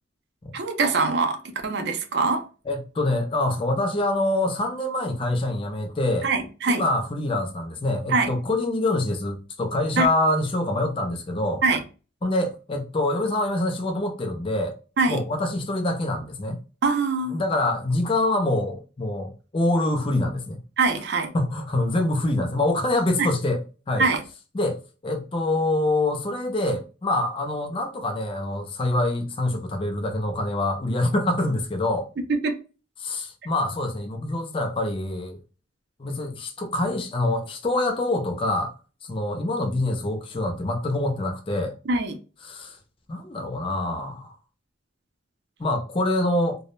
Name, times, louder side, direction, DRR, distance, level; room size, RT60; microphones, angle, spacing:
voice 1, 0.5-2.5 6.2-6.8 8.1-8.3 10.0-10.1 11.6-11.8 15.0-15.2 16.8-17.4 20.8-21.3 23.2-23.3 24.0-24.2 32.3-32.6 41.9-42.2, right 3 dB, 55° right, 0.4 m, -23 dB
voice 2, 2.7-6.3 6.7-11.6 12.2-14.8 15.1-16.6 17.3-20.6 21.3-23.6 23.9-24.1 24.5-32.1 33.0-35.4 36.0-38.7 39.0-41.7 42.4-42.8 43.1-44.3 45.6-46.6, left 2 dB, 25° left, 0.4 m, -25 dB
2.2 x 2.0 x 3.0 m
head